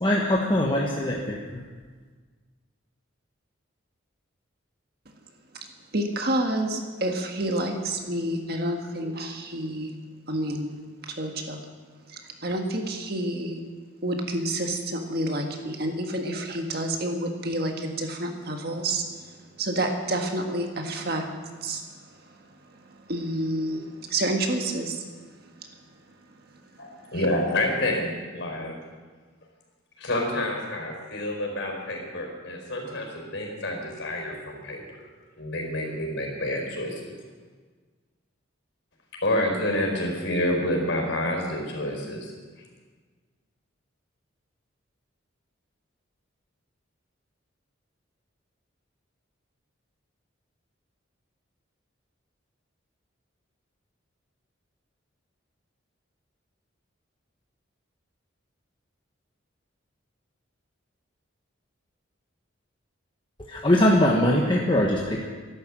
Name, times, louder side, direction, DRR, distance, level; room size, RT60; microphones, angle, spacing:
voice 1, 0.0-1.4 63.5-65.3, left 1 dB, 25° left, -2 dB, 1.2 m, -22 dB
voice 2, 5.9-9.9 10.3-10.7 11.2-11.6 12.4-13.6 14.0-19.0 19.6-21.2 21.6-21.8 23.1-25.0, right 1 dB, 50° right, 3 dB, 1.7 m, -28 dB
voice 3, 26.8-28.7 30.0-35.0 35.4-37.1 39.2-42.3, left 1 dB, 65° left, 1 dB, 4.8 m, -28 dB
14.0 x 11.5 x 7.5 m, 1.5 s
head